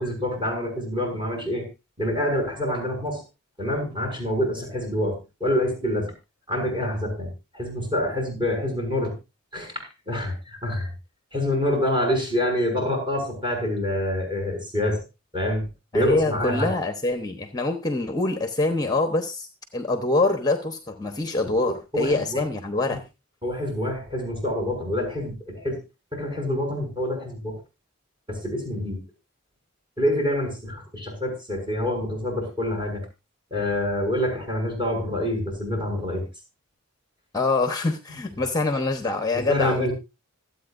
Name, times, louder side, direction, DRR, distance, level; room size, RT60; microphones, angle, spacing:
voice 1, 0.0-1.7 2.0-3.2 3.6-6.1 6.5-9.1 9.5-10.9 11.3-15.0 15.3-16.7 21.6-22.4 23.4-25.8 26.1-27.6 28.3-29.0 30.0-33.0 33.5-36.2 39.5-39.9, left 1 dB, 25° right, 2 dB, 6.6 m, -26 dB
voice 2, 15.9-23.0 37.3-39.9, left 2 dB, 20° left, 7 dB, 1.0 m, -25 dB
25.5 x 8.8 x 2.6 m, 0.26 s
head